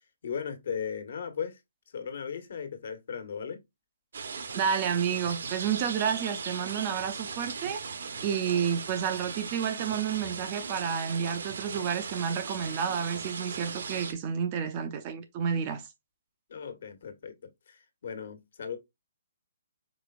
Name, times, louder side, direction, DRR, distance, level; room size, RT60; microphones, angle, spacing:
voice 1, 0.2-1.6 1.9-3.6 16.5-17.3 17.7-18.8, left 7 dB, 55° left, 1.4 m, -37 dB
sound 1, 4.1-14.1, right 5 dB, 65° right, 0.9 m, -38 dB
voice 2, 4.5-7.8 8.2-15.9, right 7 dB, 25° right, 0.6 m, -30 dB
5.0 x 4.4 x 2.4 m
hypercardioid pair, 170°, 0 cm